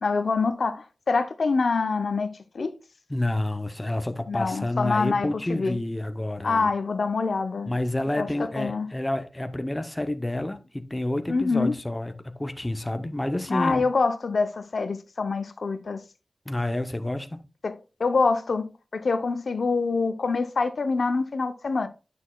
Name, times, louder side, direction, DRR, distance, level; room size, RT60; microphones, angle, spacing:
voice 1, 0.0-2.8 4.3-5.8 6.4-7.7 8.2-8.9 11.3-11.7 13.5-16.0 17.6-17.7 18.0-21.9, left 4 dB, 75° left, 0.7 m, -25 dB
voice 2, 3.1-6.7 7.7-13.8 16.5-17.4, left 1 dB, 15° left, 0.7 m, -29 dB
9.4 x 6.3 x 2.3 m
wide cardioid pair, 100°, 0 cm